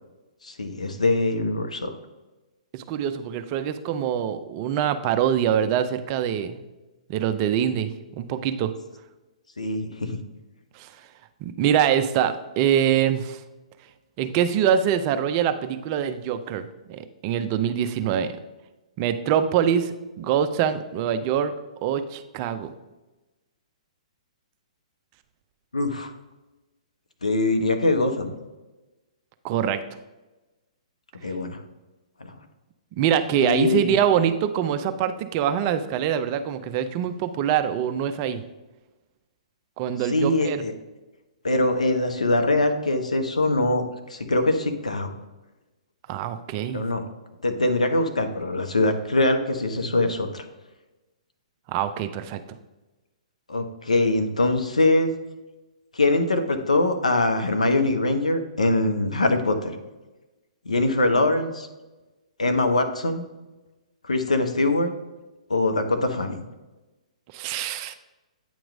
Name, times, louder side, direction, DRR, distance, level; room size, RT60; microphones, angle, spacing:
voice 1, 0.4-1.9 9.6-10.2 25.7-26.1 27.2-28.3 31.2-31.6 33.4-34.0 40.1-40.7 41.4-45.2 46.7-47.0 47.4-50.4 53.5-55.1 55.9-59.7 60.6-61.7 62.4-63.3 64.0-64.9 65.5-66.4, left 2 dB, 85° left, 7 dB, 0.8 m, -23 dB
voice 2, 2.7-6.6 7.1-7.9 8.2-8.7 10.8-10.9 11.4-13.4 14.2-18.3 19.0-21.5 21.8-22.7 29.4-29.8 32.9-38.4 39.8-40.6 46.1-46.8 51.7-52.6 67.3-67.9, right 9 dB, 35° right, 10 dB, 0.5 m, -24 dB
8.8 x 3.1 x 5.1 m, 1.1 s
figure-of-eight pair, 125°, 4 cm